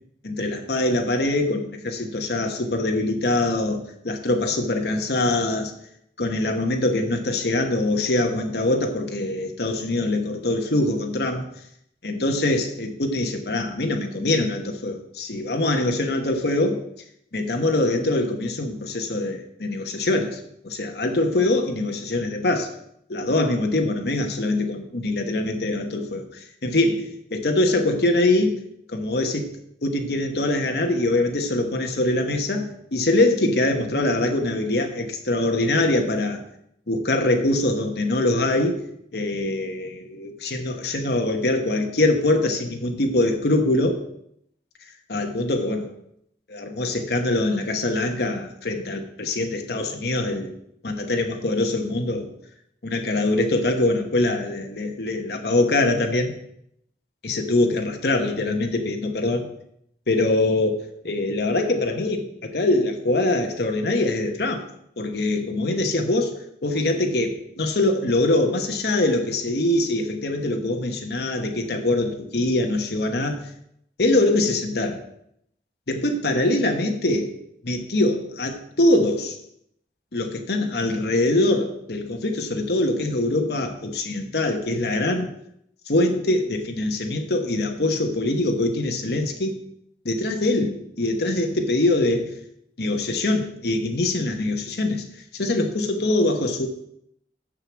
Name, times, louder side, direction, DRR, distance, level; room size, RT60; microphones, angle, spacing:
voice 1, 0.2-5.7 6.2-11.4 12.0-16.8 17.3-20.4 20.6-22.7 23.1-28.6 28.9-29.5 29.8-36.4 36.9-38.8 39.1-44.0 45.1-45.9 46.5-50.5 50.8-52.3 52.8-56.3 57.2-59.5 60.1-64.6 65.0-73.4 74.0-75.0 75.9-77.3 77.6-79.4 80.1-85.3 85.9-89.5 90.0-92.4 92.8-95.0 95.3-96.7, left 2 dB, 70° left, 4 dB, 1.1 m, -23 dB
6.6 x 6.1 x 7.2 m, 0.74 s
head